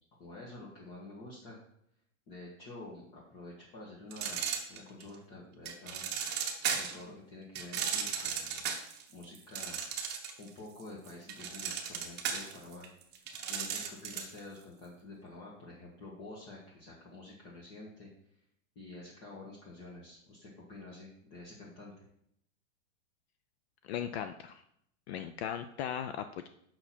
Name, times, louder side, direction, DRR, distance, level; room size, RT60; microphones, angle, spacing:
voice 1, 0.2-1.6 2.3-6.0 6.7-8.7 9.1-9.8 10.4-12.9 13.5-18.1 18.7-22.0, left 2 dB, 30° left, -4 dB, 1.5 m, -48 dB
sound 1, 4.1-5.1 5.7-7.0 7.5-10.5 10.8-14.4, right 7 dB, 25° right, 1.0 m, -35 dB
voice 2, 23.8-24.6 25.1-26.5, left 9 dB, 50° left, 9 dB, 0.5 m, -38 dB
6.7 x 5.9 x 4.3 m, 0.73 s
supercardioid pair, 150°, 41 cm